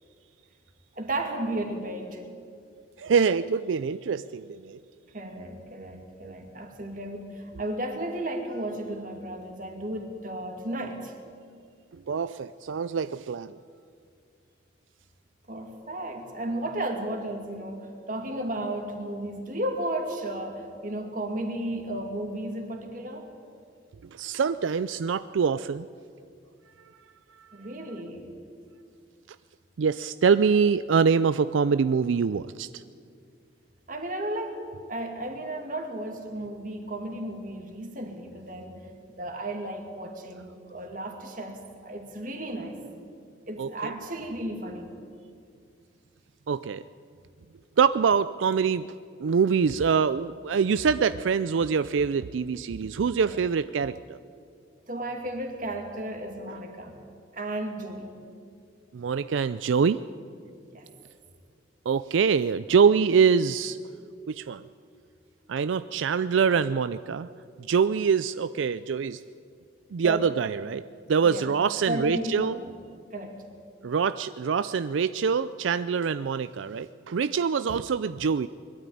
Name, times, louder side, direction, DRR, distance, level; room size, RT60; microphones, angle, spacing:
voice 1, 1.0-2.2 5.1-11.1 15.5-23.3 27.5-28.3 33.9-38.8 39.2-42.8 43.5-44.9 53.2-53.4 54.9-57.0 57.3-58.1 60.7-60.9 70.0-70.3 71.2-71.5 71.9-72.7 73.1-73.4, right 1 dB, 45° right, 4 dB, 2.4 m, -34 dB
voice 2, 3.0-4.8 12.1-13.6 24.1-25.8 27.4-27.5 29.8-32.8 43.6-43.7 46.5-46.8 47.8-48.9 49.2-54.2 58.9-60.0 61.9-63.8 64.3-64.6 65.5-67.3 67.7-69.2 69.9-70.8 71.1-72.6 73.8-78.5, right 6 dB, 85° right, 14 dB, 0.4 m, -24 dB
21.5 x 12.5 x 10.0 m, 2.3 s
head